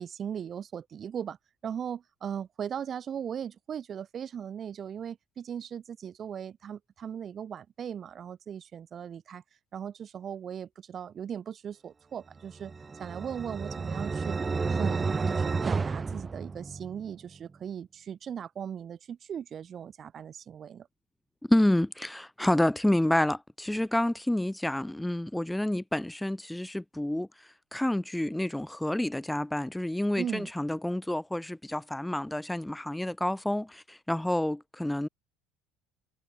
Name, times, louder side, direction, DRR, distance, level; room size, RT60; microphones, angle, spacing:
voice 1, 0.0-1.4 1.6-9.4 9.7-12.7 13.0-14.4 14.7-20.9 30.2-30.6, right 8 dB, 40° right, 2.2 m, -38 dB
sound 1, 12.5-17.1, right 4 dB, 25° right, 2.5 m, -31 dB
voice 2, 21.4-27.3 27.7-35.1, left 1 dB, 5° left, 2.6 m, -28 dB
figure-of-eight pair, 60°, 0 cm